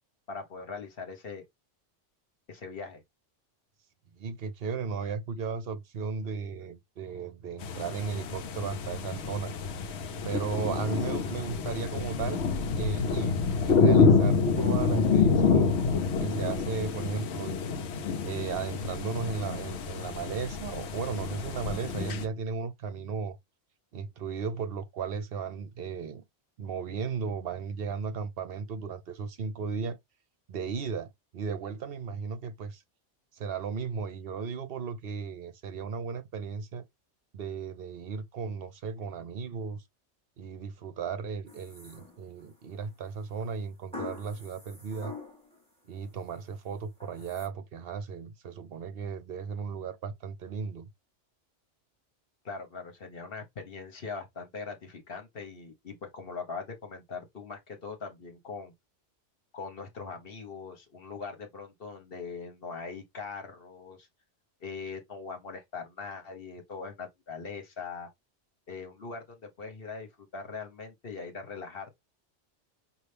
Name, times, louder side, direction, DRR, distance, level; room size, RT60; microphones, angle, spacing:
voice 1, 0.3-1.4 2.5-3.0 52.4-58.7 59.5-64.1 64.6-68.1 68.7-71.9, left 4 dB, 55° left, 1.2 m, -41 dB
voice 2, 4.1-9.5 10.2-12.4 12.7-15.9 16.2-17.6 18.2-23.4 23.9-26.2 26.6-30.0 30.5-32.8 33.3-36.8 37.3-39.8 40.4-45.1 45.9-50.9, right 5 dB, 60° right, 0.9 m, -35 dB
sound 1, 7.6-22.2, left 5 dB, 70° left, 0.9 m, -27 dB
sound 2, 41.5-42.5 43.9-45.6 46.0-46.5 47.0-47.5, left 3 dB, 5° left, 2.2 m, -44 dB
5.5 x 2.5 x 3.3 m
omnidirectional pair, 1.2 m